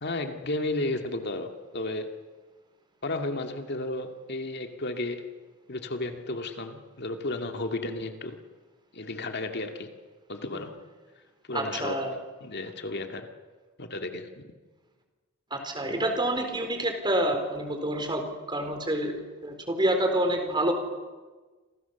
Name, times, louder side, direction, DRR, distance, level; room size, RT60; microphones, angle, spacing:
voice 1, 0.0-2.1 3.0-5.3 5.7-8.4 8.9-9.9 10.3-10.8 11.5-12.0 12.4-13.3 13.8-14.5 15.9-16.0, left 2 dB, 50° left, 5 dB, 2.2 m, -33 dB
voice 2, 11.5-12.1 15.5-19.1 19.4-20.7, right 1 dB, 20° right, 5 dB, 4.2 m, -27 dB
29.5 x 27.0 x 7.1 m, 1.3 s
head